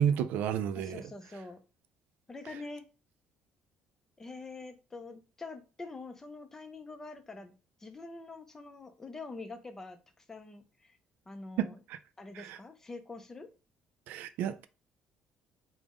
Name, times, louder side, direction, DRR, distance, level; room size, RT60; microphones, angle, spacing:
voice 1, 0.0-1.0 11.6-12.0 12.3-12.6 14.1-14.6, right 9 dB, 75° right, 0.3 m, -31 dB
voice 2, 0.7-1.6 2.3-2.9 4.2-7.5 7.8-11.0 11.3-11.8 12.2-13.5, left 3 dB, 15° left, 0.4 m, -45 dB
3.5 x 2.0 x 3.6 m
cardioid pair, 155°, 3 cm